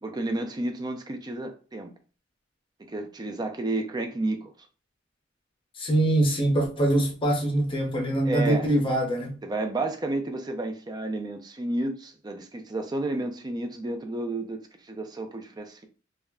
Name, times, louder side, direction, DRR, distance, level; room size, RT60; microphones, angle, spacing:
voice 1, 0.0-1.9 2.8-4.5 8.3-8.7 9.4-14.6 14.9-15.9, right 2 dB, 20° right, 0.4 m, -31 dB
voice 2, 5.8-9.4, right 1 dB, 25° left, 0.7 m, -23 dB
2.3 x 2.0 x 3.4 m
head